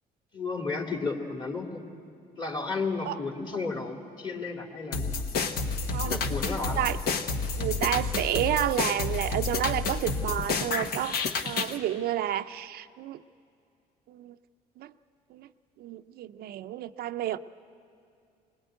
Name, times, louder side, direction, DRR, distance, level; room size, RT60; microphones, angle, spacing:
voice 1, 0.3-1.9 2.4-5.3 6.0-6.8, left 3 dB, 30° left, 2 dB, 2.8 m, -33 dB
sound 1, 4.9-11.8, left 4 dB, 65° left, 1.2 m, -30 dB
voice 2, 5.9-6.2 6.8-7.0 7.6-11.2 11.4-13.2 14.1-14.4 14.8-14.9 15.3-15.5 15.8-17.4, right 12 dB, 65° right, 10 dB, 0.5 m, -30 dB
22.5 x 20.0 x 9.0 m, 2.4 s
cardioid pair, 110°, 17 cm